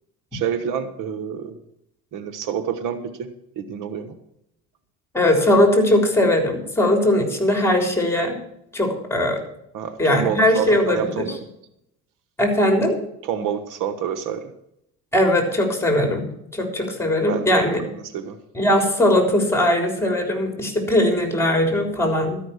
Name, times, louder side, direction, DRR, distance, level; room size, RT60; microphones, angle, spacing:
voice 1, 0.3-1.5 2.1-3.0 3.6-4.2 9.7-11.5 13.2-14.5 17.3-17.6 17.8-18.4, right 8 dB, 70° right, 10 dB, 1.2 m, -28 dB
voice 2, 5.1-8.4 8.7-9.4 10.0-11.3 12.4-13.0 15.1-16.3 16.5-17.8 18.5-22.4, left 1 dB, 10° left, 3 dB, 3.7 m, -19 dB
13.0 x 5.9 x 8.1 m, 0.78 s
supercardioid pair, 80°, 33 cm